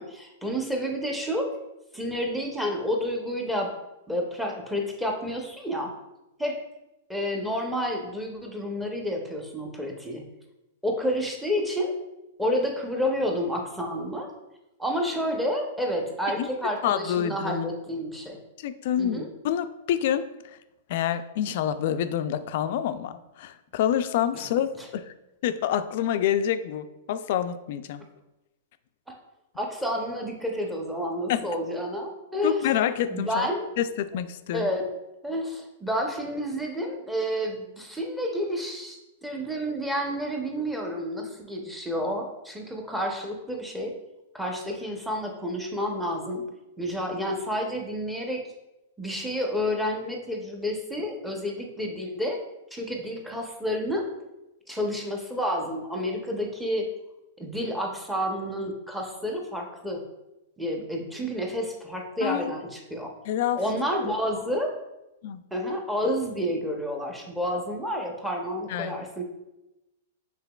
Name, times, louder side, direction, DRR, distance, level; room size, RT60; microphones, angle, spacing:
voice 1, 0.0-1.5 1.9-3.7 4.1-5.9 6.4-6.6 7.1-10.2 10.8-11.9 12.4-14.3 14.8-18.4 19.0-19.3 24.3-24.4 29.6-32.7 33.1-33.7 34.5-34.9 35.2-43.9 44.3-46.5 46.8-48.4 49.0-52.4 52.7-54.1 54.7-56.9 57.4-60.0 60.6-63.1 63.5-64.7 65.5-69.2, equal, 5° right, 1 dB, 0.7 m, -30 dB
voice 2, 16.8-17.7 18.6-20.3 20.9-25.1 25.4-28.0 31.3-31.5 32.4-33.5 33.8-34.7 62.2-62.6 63.3-63.8 65.2-65.4 68.7-68.9, left 10 dB, 60° left, 11 dB, 0.3 m, -27 dB
5.7 x 3.7 x 2.3 m, 0.96 s
hypercardioid pair, 135°, 0 cm